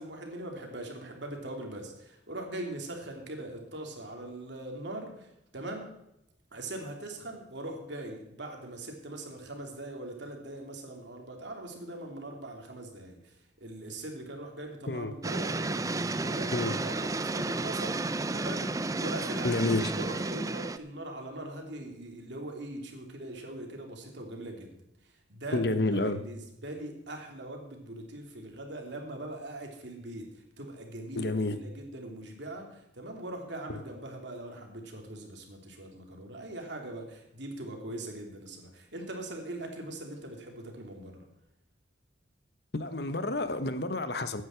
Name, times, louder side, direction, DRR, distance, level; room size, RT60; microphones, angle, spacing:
voice 1, 0.0-5.9 6.5-24.7 25.0-30.3 30.6-41.3, right 1 dB, 65° right, 2.9 m, -41 dB
sound 1, 15.2-20.8, right 2 dB, 15° right, 0.4 m, -32 dB
voice 2, 19.4-19.9 25.5-26.2 31.1-31.6 33.7-33.8 42.7-44.4, left 2 dB, 55° left, 1.0 m, -29 dB
15.0 x 9.6 x 4.5 m
head